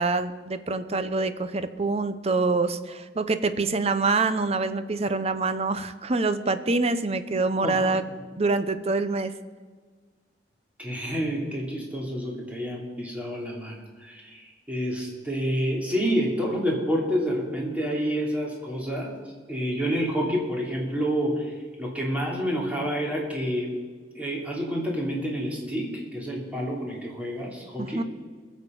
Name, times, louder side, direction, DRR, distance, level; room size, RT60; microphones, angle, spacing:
voice 1, 0.0-8.0 8.4-9.3 27.8-28.0, right 3 dB, 35° right, 11 dB, 0.7 m, -25 dB
voice 2, 10.8-19.1 19.5-23.7 24.1-28.0, equal, 10° right, -3 dB, 3.0 m, -28 dB
21.5 x 7.3 x 5.3 m, 1.5 s
head